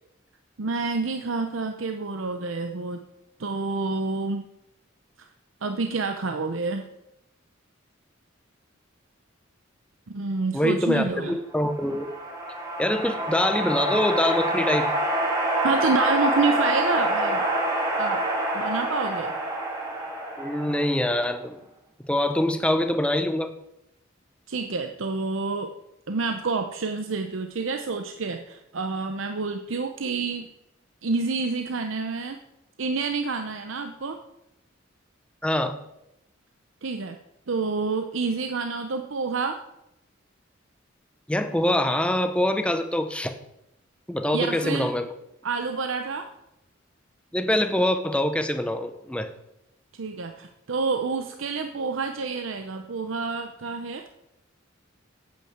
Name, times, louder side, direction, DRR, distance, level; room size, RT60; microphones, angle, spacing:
voice 1, 0.6-3.0 3.4-4.4 5.2-5.3 5.6-6.8 10.1-11.4 15.6-17.4 18.0-19.3 24.5-25.7 26.1-30.5 31.0-32.4 32.8-34.2 36.8-37.2 37.5-39.6 44.3-44.9 45.4-46.3 49.9-54.1, right 4 dB, 75° right, 6 dB, 0.7 m, -28 dB
voice 2, 10.5-12.1 12.8-14.9 20.4-21.6 22.0-23.5 35.4-35.7 41.3-43.4 44.1-45.1 47.3-49.3, left 1 dB, 5° left, 9 dB, 0.7 m, -24 dB
sound 1, 11.6-21.2, right 1 dB, 20° right, 2.2 m, -27 dB
8.9 x 8.7 x 6.6 m, 0.84 s
head